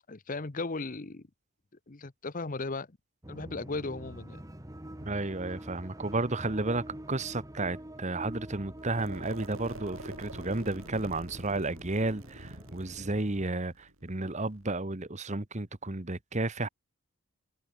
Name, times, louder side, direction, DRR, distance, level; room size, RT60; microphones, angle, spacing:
voice 1, 0.1-1.2 1.9-2.9 3.3-4.4, left 3 dB, 35° left, 0.9 m, -36 dB
sound 1, 3.2-13.5, right 1 dB, 15° right, 1.4 m, -46 dB
voice 2, 5.0-16.7, right 2 dB, 30° right, 1.3 m, -32 dB
sound 2, 8.8-14.8, right 2 dB, 65° right, 5.3 m, -46 dB
head